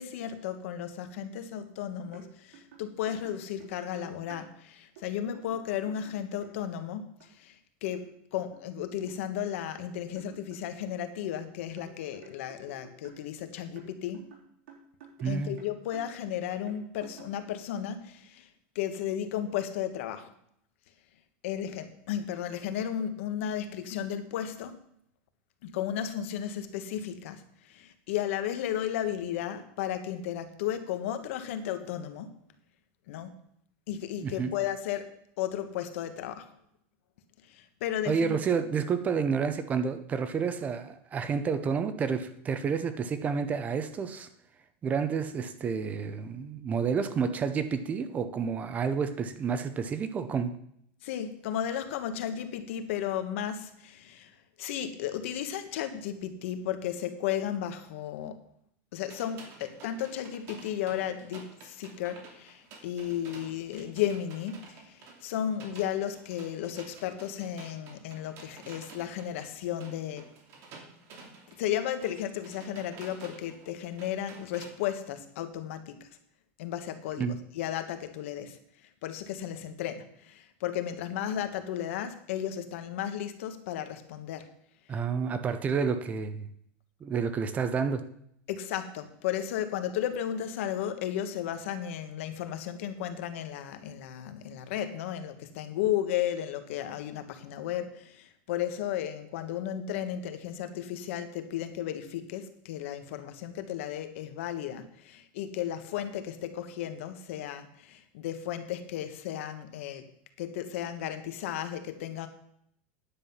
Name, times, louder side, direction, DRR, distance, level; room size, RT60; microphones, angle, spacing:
voice 1, 0.0-7.5 7.8-8.1 8.3-14.3 15.2-18.5 18.7-20.3 21.4-24.8 25.6-32.4 33.1-33.3 33.9-35.1 35.4-36.5 37.4-38.4 51.0-58.4 58.9-70.3 71.6-76.1 76.6-78.6 79.0-84.5 88.5-110.1 110.4-112.3, left 10 dB, 70° left, 9 dB, 1.3 m, -34 dB
sound 1, 2.1-2.3 2.5-4.5 5.0-5.1 5.3-6.5 7.2-7.3 7.9-8.1 8.5-9.9 10.1-13.3 13.8-15.3 15.6-16.1 16.7-17.4, right 5 dB, 75° right, 3.5 m, -52 dB
voice 2, 15.2-15.5 34.2-34.5 38.1-44.3 44.8-50.5 77.2-77.4 84.9-86.5 87.0-88.0, right 6 dB, 20° right, 10 dB, 0.7 m, -30 dB
sound 2, 59.0-74.7, right 4 dB, 40° right, 2.7 m, -51 dB
10.0 x 7.6 x 5.6 m, 0.70 s
supercardioid pair, 155°, 7 cm